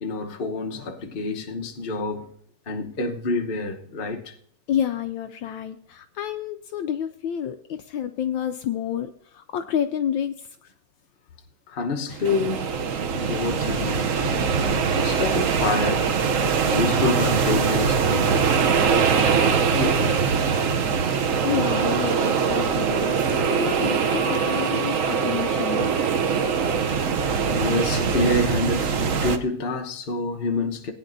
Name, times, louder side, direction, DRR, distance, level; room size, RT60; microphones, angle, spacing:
voice 1, 0.0-2.3 2.7-4.3 11.7-12.7 13.1-16.1 16.7-18.5 19.7-20.3 27.1-27.2 27.5-30.9, left 3 dB, 40° left, 0.7 m, -27 dB
voice 2, 4.7-10.5 21.4-25.9, left 9 dB, 75° left, 1.2 m, -29 dB
sound 1, 12.1-29.4, right 6 dB, 90° right, 0.7 m, -22 dB
Wind instrument woodwind instrument, 23.3-28.0, right 1 dB, 45° right, 5.0 m, -40 dB
19.0 x 9.7 x 2.6 m
omnidirectional pair, 2.4 m